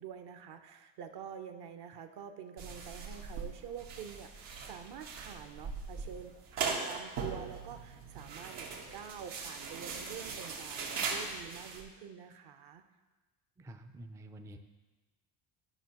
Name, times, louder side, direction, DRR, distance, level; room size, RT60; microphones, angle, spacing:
voice 1, 0.0-12.8, right 8 dB, 55° right, 8 dB, 0.8 m, -47 dB
sound 1, 2.6-11.8, right 5 dB, 85° right, 1.4 m, -40 dB
voice 2, 13.6-14.6, right 1 dB, 10° right, 6 dB, 0.3 m, -48 dB
11.0 x 5.5 x 2.9 m, 1.2 s
supercardioid pair, 85°, 47 cm